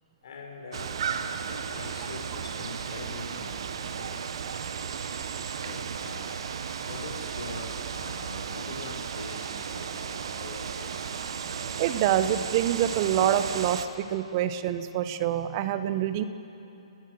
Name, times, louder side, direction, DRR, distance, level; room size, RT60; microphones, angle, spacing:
voice 1, 0.2-1.0 1.5-4.2 5.6-6.3 6.9-11.1, left 3 dB, 50° left, 1 dB, 5.3 m, -43 dB
sound 1, 0.7-13.9, right 7 dB, 55° right, 1.3 m, -34 dB
voice 2, 11.8-16.2, right 11 dB, 35° right, 11 dB, 1.2 m, -26 dB
29.5 x 19.0 x 6.6 m, 2.9 s
figure-of-eight pair, 125°, 3 cm